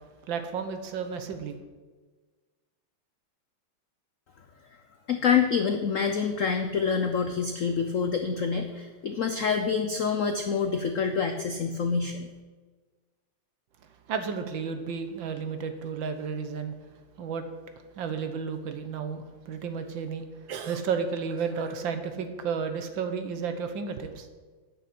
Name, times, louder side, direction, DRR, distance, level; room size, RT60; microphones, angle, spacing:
voice 1, 0.3-1.6 14.1-16.7 17.2-17.4 18.0-24.3, right 6 dB, 65° right, 8 dB, 1.6 m, -32 dB
voice 2, 5.1-12.3, left 6 dB, 75° left, 6 dB, 0.7 m, -27 dB
9.1 x 6.5 x 8.5 m, 1.3 s
omnidirectional pair, 2.3 m